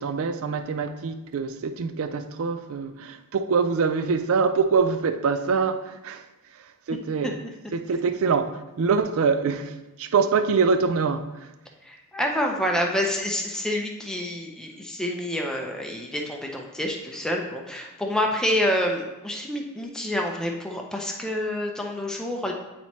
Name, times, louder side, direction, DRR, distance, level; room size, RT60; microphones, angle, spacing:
voice 1, 0.0-6.2 6.5-7.4 7.7-11.5, right 5 dB, 65° right, 0.4 m, -24 dB
voice 2, 11.8-22.5, left 1 dB, 5° left, 0.5 m, -28 dB
8.7 x 4.2 x 3.0 m
head